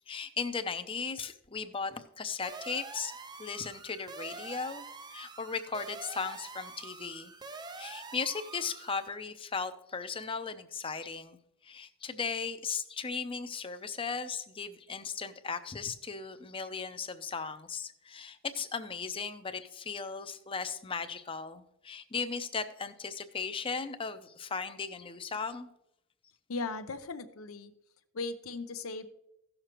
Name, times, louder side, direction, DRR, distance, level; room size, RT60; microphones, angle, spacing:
voice 1, 0.1-3.1 3.4-4.8 5.1-7.3 7.8-11.4 11.6-25.7, left 5 dB, 25° left, 10 dB, 0.6 m, -37 dB
sound 1, 2.4-9.1, right 4 dB, 20° right, 0.4 m, -46 dB
voice 2, 26.5-27.7 28.1-29.1, left 3 dB, 85° left, 9 dB, 0.7 m, -37 dB
16.0 x 6.5 x 3.0 m, 0.79 s
head